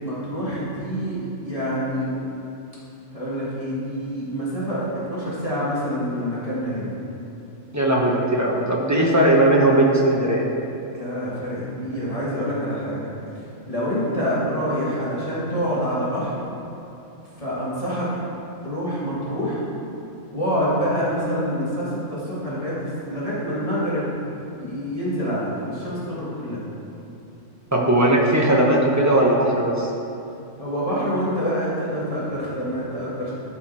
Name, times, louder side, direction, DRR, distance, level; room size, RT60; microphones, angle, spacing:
voice 1, 0.0-2.1 3.1-6.9 10.9-13.1 13.7-16.4 17.4-18.1 18.6-19.6 20.3-24.1 24.5-26.6 30.6-33.3, equal, 25° left, -9 dB, 2.3 m, -26 dB
voice 2, 7.7-10.5 27.7-29.9, right 1 dB, 15° right, -3 dB, 1.1 m, -18 dB
13.0 x 5.9 x 4.4 m, 2.8 s
omnidirectional pair, 1.4 m